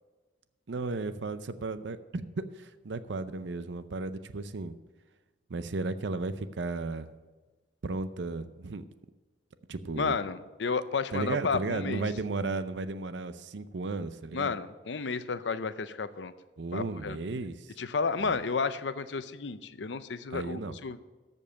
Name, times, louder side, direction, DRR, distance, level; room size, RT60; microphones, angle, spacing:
voice 1, 0.7-4.7 5.5-7.1 7.8-8.8 9.7-10.2 11.1-14.5 16.6-17.7 18.2-18.4 20.3-20.7, right 3 dB, 85° right, 12 dB, 0.6 m, -34 dB
voice 2, 10.0-12.0 14.3-16.3 16.7-17.2 17.8-21.0, left 4 dB, 90° left, 13 dB, 0.6 m, -32 dB
14.0 x 5.4 x 6.5 m, 1.3 s
head